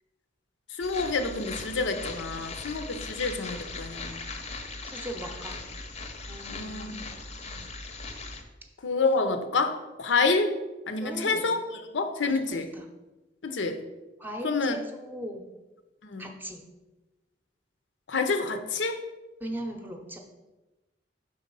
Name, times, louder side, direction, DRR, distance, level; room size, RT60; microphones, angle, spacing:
voice 1, 0.8-4.2 6.5-7.1 8.8-10.6 10.9-11.6 11.9-12.7 13.4-13.8 14.4-14.8 16.0-16.2 18.1-19.0, left 4 dB, 85° left, 7 dB, 0.6 m, -28 dB
sound 1, 0.8-8.4, left 3 dB, 35° left, 0.6 m, -39 dB
voice 2, 4.8-5.6 6.2-7.0 7.5-7.7 11.0-11.5 12.2-12.8 14.2-15.5 16.2-16.6 19.4-20.2, right 1 dB, 10° right, 3 dB, 0.7 m, -39 dB
5.6 x 3.9 x 5.3 m, 1.1 s
head